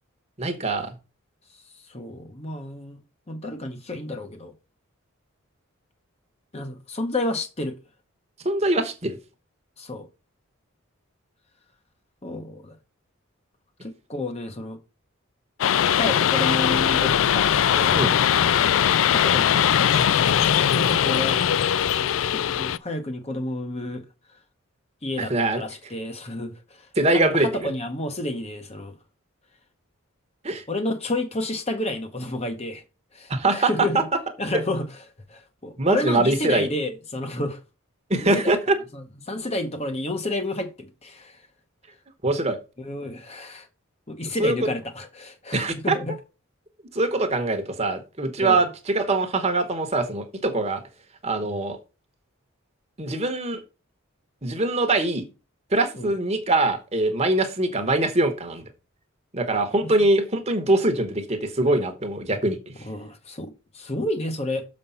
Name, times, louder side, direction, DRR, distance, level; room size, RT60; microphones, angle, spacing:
voice 1, 0.4-0.9 8.4-9.1 17.9-18.2 25.2-25.6 27.0-27.5 30.4-30.6 33.3-33.7 35.8-36.7 38.1-38.6 42.2-42.6 44.4-44.5 45.5-46.0 46.9-50.8 51.2-51.8 53.0-53.6 54.4-55.2 55.7-58.6 59.3-62.6, right 2 dB, 30° right, 1.2 m, -23 dB
voice 2, 1.7-3.0 3.3-4.5 6.5-7.8 9.8-10.1 12.2-12.8 13.8-14.8 15.9-18.1 18.4-18.7 19.1-20.4 20.7-21.4 22.3-24.4 25.0-28.9 30.7-32.8 33.1-34.1 34.4-37.6 38.1-38.6 38.9-41.5 42.8-43.7 44.1-46.2 48.4-48.7 56.0-56.1 59.8-59.9 62.8-64.7, left 1 dB, 30° left, 1.0 m, -31 dB
sound 1, 15.6-22.8, left 9 dB, 65° left, 0.3 m, -20 dB
6.8 x 5.2 x 5.6 m
head